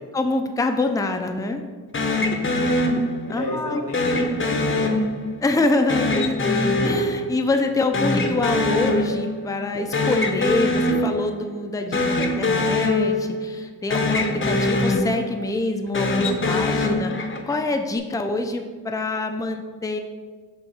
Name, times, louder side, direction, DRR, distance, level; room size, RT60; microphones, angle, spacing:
voice 1, 0.1-1.6 3.3-3.8 5.4-20.0, left 2 dB, 10° left, 5 dB, 0.5 m, -25 dB
sound 1, 1.9-3.5 3.9-5.5 5.9-7.7 7.9-9.5 9.7-11.5 11.9-13.6 13.9-15.5 15.9-17.6, left 2 dB, 30° left, 0.8 m, -23 dB
voice 2, 2.2-2.8 3.3-4.9, left 2 dB, 85° left, 0 dB, 1.5 m, -32 dB
5.9 x 3.5 x 5.6 m, 1.5 s
cardioid pair, 70°, 40 cm